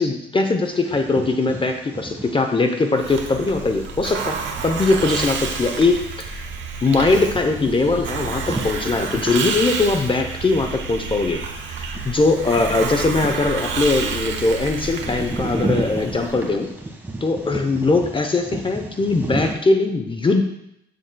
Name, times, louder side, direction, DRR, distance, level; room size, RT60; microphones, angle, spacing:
voice 1, 0.0-6.5 6.8-11.4 12.0-16.7 17.2-20.4, left 3 dB, 25° left, 6 dB, 0.7 m, -21 dB
Bird vocalization bird call bird song, 0.6-19.5, right 2 dB, 10° right, 1.5 m, -34 dB
Hiss, 3.0-16.5, right 5 dB, 70° right, 1.0 m, -29 dB
11.0 x 6.7 x 2.2 m, 0.79 s
cardioid pair, 90°, 20 cm